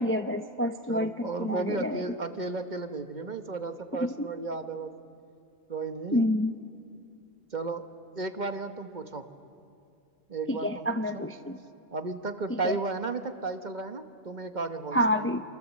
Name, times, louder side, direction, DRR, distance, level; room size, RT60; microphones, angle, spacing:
voice 1, 0.0-2.0 4.0-4.3 6.1-6.5 10.5-11.6 12.6-12.8 14.9-15.4, left 1 dB, 15° left, 8 dB, 0.6 m, -28 dB
voice 2, 0.9-4.9 5.7-6.3 7.5-7.9 8.2-9.3 10.3-11.2 11.9-15.3, right 3 dB, 45° right, 7 dB, 1.2 m, -34 dB
27.0 x 25.5 x 7.4 m, 2.5 s
omnidirectional pair, 1.1 m